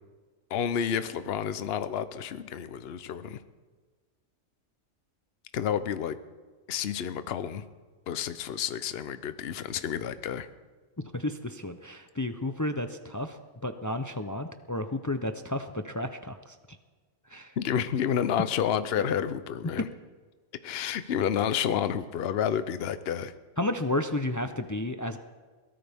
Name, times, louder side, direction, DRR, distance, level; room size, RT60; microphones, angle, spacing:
voice 1, 0.5-3.4 5.5-6.2 6.7-7.6 8.1-10.5 17.6-19.9 20.6-23.3, left 8 dB, 55° left, 12 dB, 0.9 m, -30 dB
voice 2, 11.1-13.4 13.6-16.6 17.3-17.5 23.6-25.2, left 1 dB, 30° left, 8 dB, 0.3 m, -32 dB
22.5 x 17.5 x 3.5 m, 1.4 s
omnidirectional pair, 1.4 m